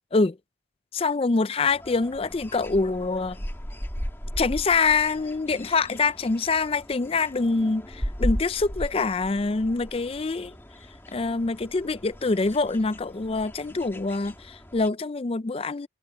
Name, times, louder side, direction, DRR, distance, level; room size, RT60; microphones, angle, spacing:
voice 1, 0.9-3.4 4.4-10.5 11.1-15.9, left 4 dB, 30° left, 0.4 m, -25 dB
sound 1, 1.6-14.9, equal, 10° left, 2.0 m, -36 dB
head